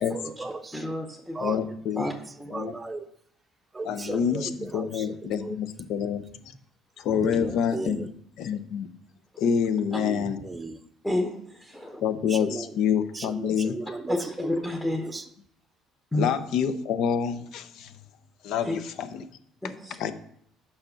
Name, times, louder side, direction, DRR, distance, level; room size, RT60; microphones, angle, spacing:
voice 1, 0.0-0.9 1.3-1.6 2.0-3.1 3.7-5.6 7.1-8.1 9.9-10.8 12.3-12.7 13.1-14.5 15.0-15.3, right 3 dB, 15° right, 6 dB, 0.6 m, -36 dB
voice 2, 0.7-1.4 2.0-2.1 2.4-2.5 11.0-12.0 14.1-15.1 16.1-16.3 18.6-18.8 19.6-20.0, left 1 dB, 10° left, 2 dB, 1.0 m, -30 dB
voice 3, 1.4-2.1 2.5-2.7 3.8-6.5 7.0-8.1 8.4-8.9 9.4-10.4 12.0-13.8 16.1-17.9 18.4-19.3 19.6-19.7 20.0-20.1, left 7 dB, 70° left, 11 dB, 0.7 m, -27 dB
6.5 x 5.7 x 5.8 m, 0.67 s
cardioid pair, 110°, 0 cm